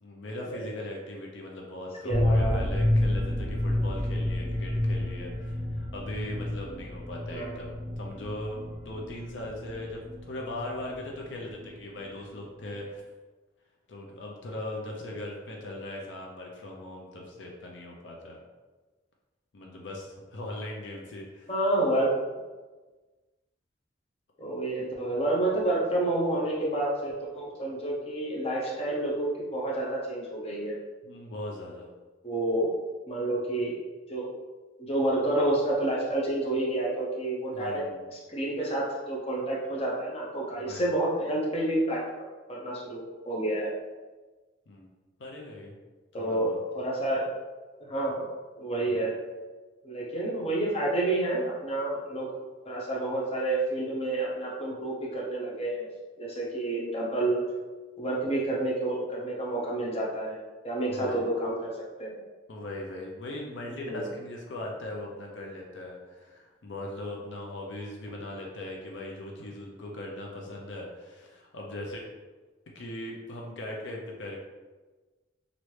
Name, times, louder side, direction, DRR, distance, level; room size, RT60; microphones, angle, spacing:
voice 1, 0.0-13.0 13.9-18.4 19.5-21.5 31.0-31.9 37.5-38.0 40.6-40.9 44.7-44.9 45.2-45.8 46.2-46.6 48.9-49.1 60.9-61.2 62.5-72.0 72.7-74.4, left 1 dB, 75° left, -1 dB, 0.5 m, -39 dB
voice 2, 2.0-2.6 7.3-7.6 21.5-22.1 24.4-30.8 32.2-32.7 33.1-33.8 34.1-34.3 34.8-42.0 42.5-43.7 46.1-47.3 47.8-48.3 48.6-49.2 49.8-52.4 52.6-55.9 56.2-57.4 58.0-60.4 60.6-61.7 62.0-62.2 63.8-64.1, right 1 dB, 30° left, -4 dB, 0.7 m, -29 dB
sound 1, 2.1-11.7 12.0-12.1 12.3-12.4, left 1 dB, 5° right, 0.8 m, -30 dB
3.1 x 2.6 x 3.1 m, 1.3 s
head